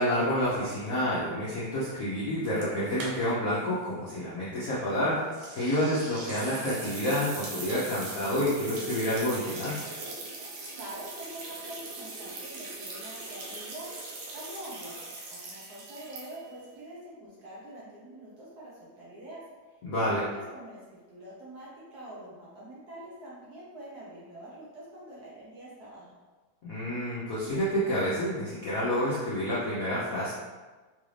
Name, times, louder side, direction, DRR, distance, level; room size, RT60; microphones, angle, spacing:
voice 1, 0.0-5.2 5.5-9.7 19.8-20.2 26.6-30.3, equal, 70° left, -9 dB, 0.8 m, -29 dB
sound 1, 2.4-3.6 3.8-3.9 5.3-16.6, right 3 dB, 85° right, 1.5 m, -41 dB
voice 2, 10.7-13.9 14.3-19.4 20.0-26.1, right 1 dB, 60° right, -7 dB, 1.1 m, -45 dB
4.0 x 2.5 x 3.2 m, 1.3 s
omnidirectional pair, 2.3 m